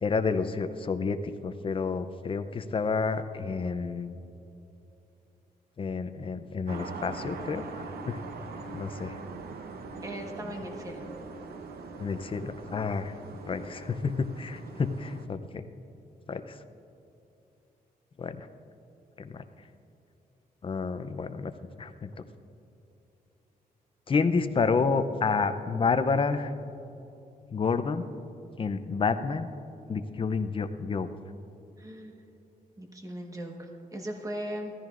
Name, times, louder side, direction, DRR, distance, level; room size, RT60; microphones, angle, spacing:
voice 1, 0.0-4.2 5.8-8.2 8.7-9.2 12.0-13.1 13.5-15.6 16.3-16.6 18.2-18.5 19.2-19.4 20.6-21.5 21.8-22.1 24.1-26.5 27.5-28.0 28.6-29.5 29.9-31.1, left 4 dB, 35° left, 10 dB, 0.6 m, -29 dB
sound 1, 6.7-15.3, right 3 dB, 85° right, 0.9 m, -42 dB
voice 2, 10.0-11.1 31.8-32.2 32.8-34.7, right 1 dB, 20° right, 2 dB, 1.3 m, -38 dB
17.0 x 14.0 x 2.5 m, 2.9 s
wide cardioid pair, 140°, 16 cm